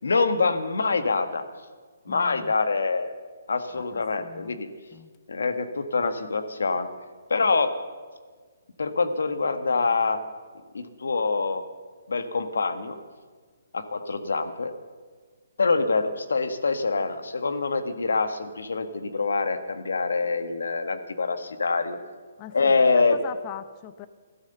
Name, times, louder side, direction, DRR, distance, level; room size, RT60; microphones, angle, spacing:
voice 1, 0.0-1.4 2.1-3.1 3.5-4.7 5.3-6.9 7.3-7.7 8.8-10.2 10.7-11.6 12.1-13.0 13.7-14.7 15.6-22.0 22.5-23.2, left 4 dB, 85° left, 9 dB, 1.5 m, -25 dB
voice 2, 2.1-2.5 3.9-4.6 4.9-5.1 7.4-7.5 22.4-24.1, left 12 dB, 30° left, 13 dB, 0.6 m, -41 dB
14.0 x 12.5 x 6.9 m, 1.5 s
hypercardioid pair, 155°, 0 cm